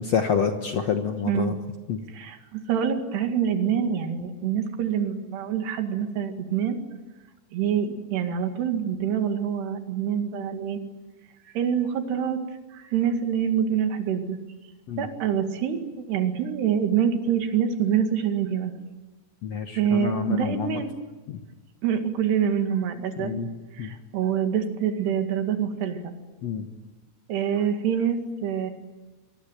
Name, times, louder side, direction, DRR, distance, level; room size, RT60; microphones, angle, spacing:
voice 1, 0.0-1.5 1.9-2.0 14.9-15.1 19.4-20.8 21.3-21.4 23.2-23.5 23.8-23.9 26.4-26.7, left 6 dB, 60° left, 5 dB, 1.8 m, -27 dB
voice 2, 1.2-1.6 2.1-6.8 7.5-10.8 11.6-12.4 12.7-14.4 15.0-18.8 19.8-20.9 21.8-23.3 23.7-26.2 27.3-28.7, right 8 dB, 80° right, 6 dB, 4.3 m, -26 dB
25.5 x 22.5 x 9.1 m, 1.2 s
omnidirectional pair, 4.7 m